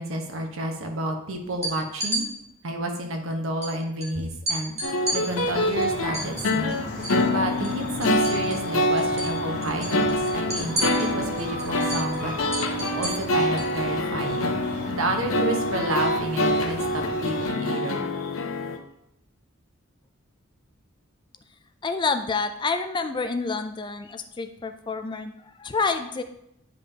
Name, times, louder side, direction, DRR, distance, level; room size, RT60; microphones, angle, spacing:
voice 1, 0.0-2.3 2.6-4.7 5.1-6.9 7.3-12.3 12.9-18.1, right 1 dB, 75° right, 3 dB, 1.1 m, -30 dB
sound 1, 1.5-2.2 3.6-3.7 4.0-4.1 4.5-7.2 7.5-8.7 9.0-9.3 9.6-13.7, right 1 dB, 30° right, 1.9 m, -32 dB
sound 2, 4.8-18.8, left 1 dB, 85° left, 0.8 m, -26 dB
sound 3, 4.9-17.5, equal, 50° left, 2.0 m, -37 dB
voice 2, 21.8-25.3 25.6-26.2, left 4 dB, 20° left, 9 dB, 0.3 m, -28 dB
9.4 x 5.2 x 2.8 m, 0.80 s
head